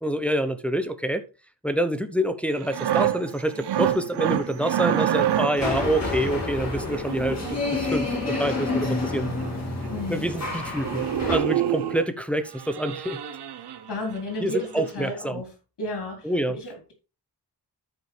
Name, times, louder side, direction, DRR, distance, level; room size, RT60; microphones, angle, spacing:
voice 1, 0.0-1.2 1.6-9.3 10.1-13.2 14.4-15.4 16.2-16.6, right 1 dB, 5° left, 0.8 m, -27 dB
sound 1, 2.5-5.8 6.8-7.9 9.1-9.2 9.4-9.5 9.8-10.0 10.3-10.5 10.8-12.1 12.5-14.2 14.6-14.8, right 10 dB, 80° right, 0.8 m, -27 dB
sound 2, 5.6-11.4, left 2 dB, 40° left, 4.3 m, -29 dB
voice 2, 9.9-10.3 13.9-15.5 15.8-16.9, left 1 dB, 75° left, 3.7 m, -33 dB
12.5 x 5.3 x 3.3 m
wide cardioid pair, 110°, 40 cm